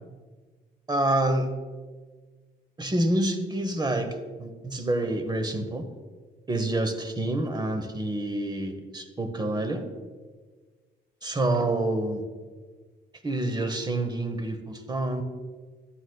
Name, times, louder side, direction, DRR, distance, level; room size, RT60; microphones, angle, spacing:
voice 1, 0.9-1.5 2.8-5.9 6.5-9.8 11.2-12.2 13.2-15.2, right 1 dB, 20° right, 8 dB, 0.9 m, -27 dB
11.5 x 8.8 x 2.2 m, 1.5 s
cardioid pair, 90°, 20 cm